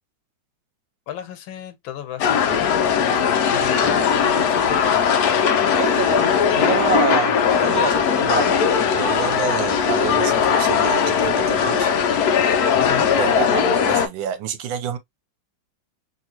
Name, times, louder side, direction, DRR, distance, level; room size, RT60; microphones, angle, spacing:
voice 1, 1.1-5.1 12.7-13.1, left 10 dB, 85° left, 1.5 m, -35 dB
sound 1, 2.2-14.1, left 7 dB, 65° left, 1.0 m, -19 dB
voice 2, 5.8-6.2 6.5-7.4 7.6-11.9 13.1-15.0, right 7 dB, 85° right, 1.4 m, -27 dB
3.1 x 2.9 x 2.8 m
omnidirectional pair, 2.1 m